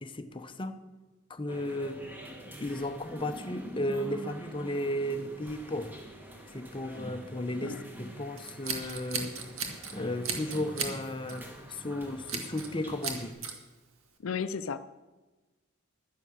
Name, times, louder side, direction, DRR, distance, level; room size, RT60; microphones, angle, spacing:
voice 1, 0.0-0.8 1.3-2.0 2.6-6.0 6.5-9.4 9.9-13.4, left 1 dB, 25° left, 8 dB, 0.8 m, -34 dB
sound 1, 1.5-13.3, equal, 10° right, 1.8 m, -45 dB
Scissors, 8.4-9.9 10.2-11.0 11.3-11.5 12.3-12.7 13.0-13.5, right 5 dB, 85° right, 1.9 m, -35 dB
voice 2, 14.2-14.8, left 6 dB, 90° left, 10 dB, 0.5 m, -33 dB
11.0 x 10.5 x 6.6 m, 1.2 s
head